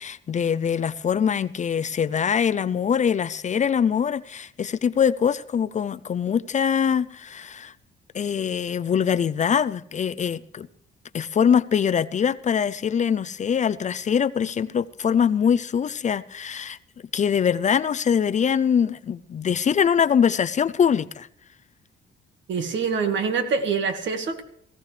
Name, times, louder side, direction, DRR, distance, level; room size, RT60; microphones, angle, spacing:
voice 1, 0.0-7.7 8.1-10.7 11.1-16.8 17.1-21.3, left 7 dB, 40° left, 0.5 m, -23 dB
voice 2, 22.5-24.4, right 5 dB, 70° right, 1.8 m, -25 dB
18.0 x 15.0 x 3.3 m
cardioid pair, 90°, 20 cm